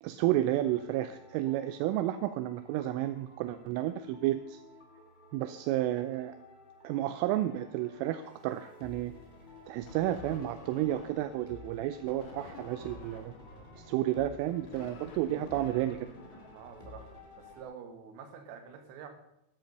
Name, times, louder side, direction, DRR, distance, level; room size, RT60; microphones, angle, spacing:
voice 1, 0.0-4.6 5.3-6.4 6.8-9.1 9.7-13.3 13.8-16.1, right 13 dB, 85° right, 11 dB, 3.1 m, -31 dB
sound 1, 0.6-17.6, left 2 dB, 60° left, 0.4 m, -53 dB
sound 2, 9.8-11.4 12.0-17.2, left 2 dB, 75° left, 1.1 m, -50 dB
voice 2, 16.5-19.1, right 7 dB, 65° right, 6 dB, 3.4 m, -48 dB
13.0 x 10.5 x 5.3 m, 0.86 s
omnidirectional pair, 5.8 m